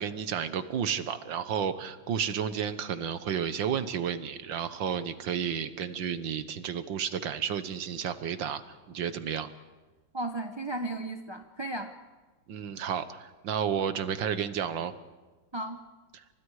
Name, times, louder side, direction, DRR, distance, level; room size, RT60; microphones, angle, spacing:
voice 1, 0.0-8.6 8.9-9.5 12.5-14.9, right 8 dB, 75° right, 12 dB, 1.8 m, -32 dB
voice 2, 10.1-11.9 15.5-15.8, right 2 dB, 20° right, 5 dB, 0.7 m, -35 dB
30.0 x 25.5 x 4.9 m, 1.3 s
omnidirectional pair, 2.1 m